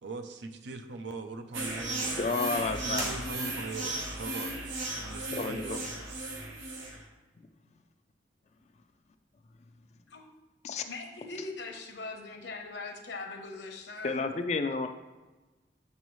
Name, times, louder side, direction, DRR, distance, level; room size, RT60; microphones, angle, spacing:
voice 1, 0.0-2.5 2.8-4.6 5.1-5.9, right 3 dB, 70° right, 8 dB, 0.5 m, -41 dB
sound 1, 1.5-7.0, right 2 dB, 90° right, 1.1 m, -35 dB
voice 2, 2.2-3.1 5.4-5.8 10.6-10.8 14.0-14.9, left 4 dB, 35° left, 7 dB, 0.4 m, -31 dB
sound 2, 2.9-4.0, right 1 dB, 20° right, 0.6 m, -41 dB
voice 3, 10.8-14.2, left 3 dB, 65° left, 3 dB, 0.9 m, -41 dB
6.8 x 5.4 x 3.1 m, 1.2 s
head